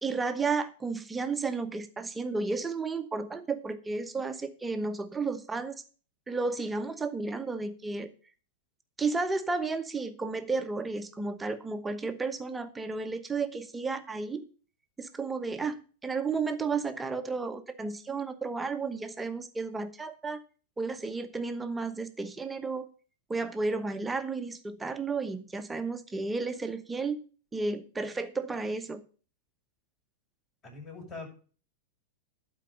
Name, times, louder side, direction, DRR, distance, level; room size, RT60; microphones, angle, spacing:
voice 1, 0.0-5.8 6.3-8.1 9.0-14.5 15.0-20.4 20.8-22.9 23.3-27.2 27.5-29.0, right 4 dB, 10° right, 9 dB, 1.0 m, -32 dB
voice 2, 30.6-31.3, left 3 dB, 30° left, -1 dB, 6.7 m, -42 dB
11.5 x 4.7 x 7.8 m, 0.39 s
hypercardioid pair, 115°, 0 cm